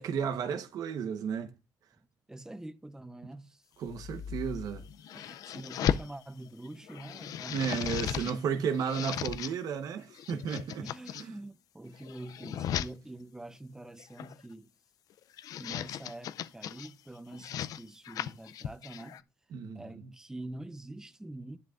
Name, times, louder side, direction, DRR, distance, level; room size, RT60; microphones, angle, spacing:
voice 1, 0.0-1.5 3.8-4.8 7.5-10.8 11.1-11.3 19.5-20.0, right 6 dB, 75° right, 1.2 m, -33 dB
voice 2, 2.3-3.7 5.1-8.7 10.8-14.7 15.6-19.3 19.7-21.6, right 1 dB, 10° right, 0.8 m, -45 dB
sound 1, 3.9-6.1 6.6-8.4 8.7-9.5 10.1-11.2 11.9-12.9 14.0-14.4 15.2-16.9 17.3-19.2, left 10 dB, 75° left, 0.5 m, -36 dB
11.0 x 10.0 x 2.6 m
cardioid pair, 90°, 6 cm